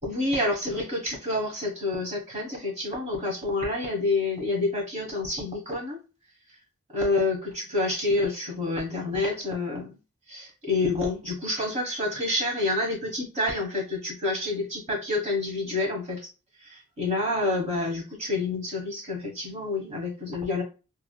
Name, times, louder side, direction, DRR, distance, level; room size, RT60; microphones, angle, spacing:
voice 1, 0.0-6.0 6.9-10.0 10.3-16.3 16.6-20.6, left 2 dB, 30° right, -1 dB, 1.2 m, -28 dB
3.4 x 2.8 x 2.2 m, 0.31 s
head